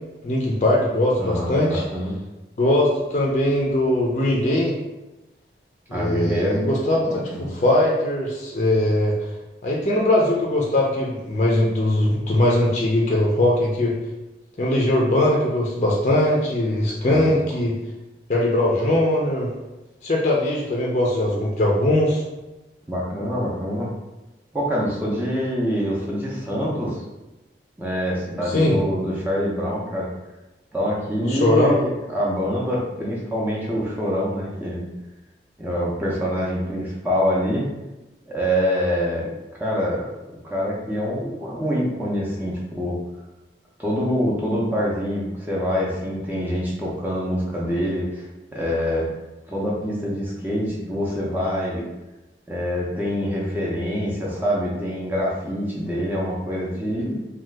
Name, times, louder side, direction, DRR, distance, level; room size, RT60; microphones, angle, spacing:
voice 1, 0.2-1.8 2.6-4.8 5.9-9.2 9.6-14.0 14.6-17.8 18.3-19.5 20.0-22.2 28.5-28.8 31.2-31.8, left 1 dB, 40° left, -2 dB, 0.4 m, -20 dB
voice 2, 1.2-2.1 5.9-6.7 7.0-7.5 17.1-17.3 22.9-23.9 24.5-27.0 27.8-30.1 30.7-34.9 35.6-37.7 38.3-39.3 39.6-40.1 40.4-43.0 43.8-49.1 49.5-51.8 52.5-57.2, equal, 10° right, -5 dB, 0.5 m, -25 dB
2.8 x 2.3 x 3.3 m, 1.0 s
head